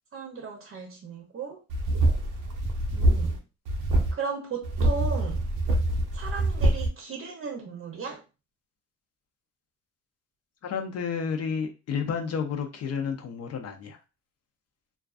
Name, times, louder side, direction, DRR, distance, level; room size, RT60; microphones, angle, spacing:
voice 1, 0.1-1.6 2.9-3.4 4.1-5.5 6.1-8.2, right 5 dB, 45° right, 0.7 m, -36 dB
sound 1, 1.7-3.4 3.7-4.1 4.6-6.9, right 1 dB, 90° right, 0.6 m, -25 dB
voice 2, 10.6-14.0, left 6 dB, 55° left, 0.5 m, -31 dB
2.4 x 2.3 x 2.3 m
cardioid pair, 90°, 30 cm